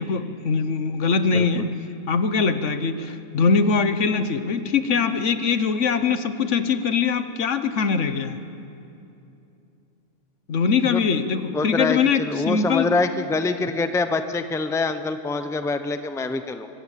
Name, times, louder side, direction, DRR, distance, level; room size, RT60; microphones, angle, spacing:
voice 1, 0.0-1.7 2.1-8.4 10.5-12.9, left 5 dB, 70° left, 10 dB, 1.4 m, -22 dB
voice 2, 11.5-16.7, left 3 dB, 5° left, 9 dB, 0.7 m, -25 dB
24.0 x 21.0 x 8.2 m, 2.7 s
omnidirectional pair, 1.3 m